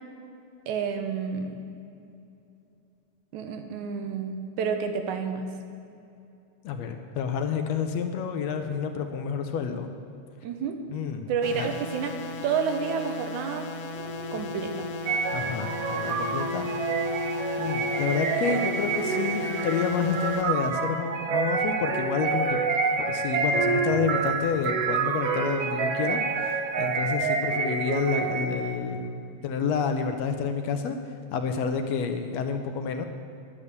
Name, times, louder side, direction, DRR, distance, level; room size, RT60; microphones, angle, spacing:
voice 1, 0.7-1.6 3.3-5.5 10.4-10.8 11.3-13.7 14.3-14.9, right 6 dB, 90° right, 6 dB, 2.4 m, -30 dB
voice 2, 6.6-9.9 10.9-11.3 11.6-11.7 15.3-16.7 17.6-22.6 23.1-31.0 31.3-33.1, left 6 dB, 70° left, 6 dB, 1.8 m, -29 dB
sound 1, 11.4-20.4, left 3 dB, 85° left, 2.6 m, -38 dB
sound 2, 13.9-20.3, left 2 dB, 25° right, 1.8 m, -35 dB
sound 3, 15.1-28.7, right 5 dB, 65° right, 1.8 m, -28 dB
10.5 x 8.7 x 8.1 m, 2.8 s
omnidirectional pair, 3.4 m